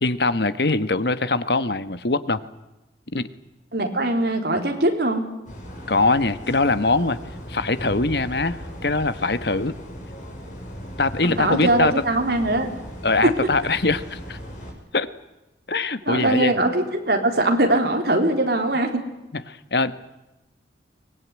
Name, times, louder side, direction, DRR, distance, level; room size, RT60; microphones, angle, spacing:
voice 1, 0.0-2.4 3.1-3.3 5.9-7.2 7.5-9.8 11.0-11.9 13.0-14.4 14.9-15.1 15.7-16.5 19.5-19.9, left 3 dB, 60° left, 13 dB, 1.3 m, -22 dB
voice 2, 3.7-5.2 11.2-12.7 13.2-13.3 16.1-19.0, right 1 dB, 60° right, 4 dB, 4.0 m, -21 dB
sound 1, 5.5-14.7, equal, 45° left, 6.6 m, -37 dB
24.0 x 20.5 x 9.7 m, 0.98 s
head